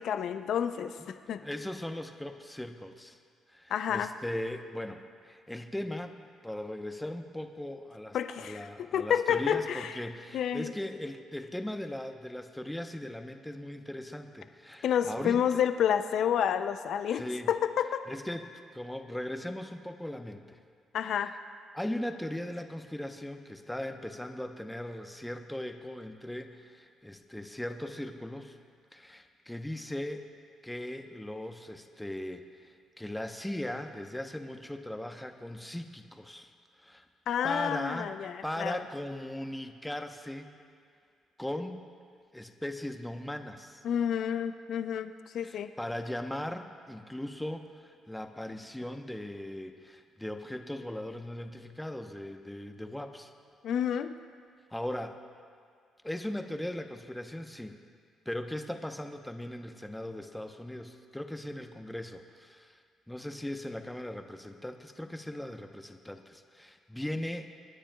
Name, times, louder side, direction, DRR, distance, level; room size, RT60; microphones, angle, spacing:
voice 1, 0.0-1.4 3.7-4.1 8.1-9.9 10.3-10.7 14.8-18.0 20.9-21.3 37.3-38.8 43.8-45.7 53.6-54.1, left 9 dB, 65° left, 10 dB, 0.4 m, -29 dB
voice 2, 1.0-3.2 3.5-6.2 6.4-15.6 17.1-17.5 18.1-20.6 21.7-28.6 28.9-30.3 30.6-37.0 37.4-38.1 38.4-40.5 41.4-41.9 42.3-43.8 45.4-53.3 54.7-55.2 56.0-57.8 58.3-62.8 63.1-67.5, left 1 dB, 5° left, 6 dB, 0.8 m, -38 dB
25.0 x 9.9 x 2.3 m, 2.1 s
supercardioid pair, 60°, 0 cm